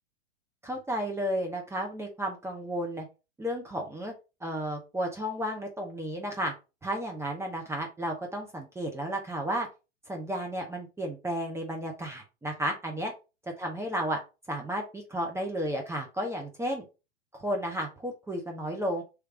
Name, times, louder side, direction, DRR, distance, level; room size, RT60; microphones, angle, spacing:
voice 1, 0.6-3.1 3.4-4.1 4.4-6.5 6.8-9.7 10.1-13.1 13.6-14.2 14.5-16.8 17.3-19.0, equal, 5° right, 2 dB, 0.8 m, -33 dB
3.2 x 3.2 x 4.7 m, 0.29 s
hypercardioid pair, 110°, 36 cm